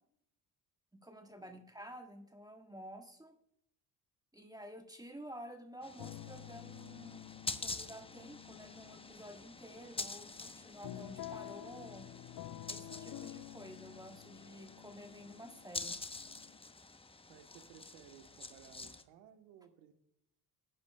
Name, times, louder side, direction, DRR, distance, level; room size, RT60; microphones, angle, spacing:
voice 1, 1.0-3.4 4.3-12.1 12.7-16.0, equal, 10° right, 4 dB, 1.5 m, -51 dB
sound 1, 5.8-19.0, left 3 dB, 15° left, 0.8 m, -47 dB
sound 2, 6.0-16.6, left 12 dB, 50° left, 0.6 m, -50 dB
voice 2, 17.3-19.9, right 9 dB, 85° right, 7 dB, 1.2 m, -59 dB
21.0 x 9.6 x 2.2 m, 0.73 s
hypercardioid pair, 65°, 44 cm